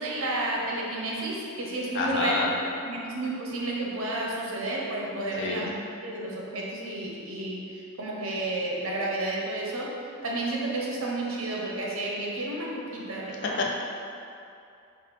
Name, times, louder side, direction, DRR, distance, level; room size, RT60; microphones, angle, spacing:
voice 1, 0.0-5.7 6.0-9.9 10.2-13.7, right 2 dB, 70° right, -3 dB, 0.7 m, -31 dB
voice 2, 1.9-2.5 5.4-5.7 13.6-13.7, left 3 dB, 55° left, -2 dB, 0.5 m, -27 dB
4.9 x 2.1 x 4.1 m, 2.6 s
head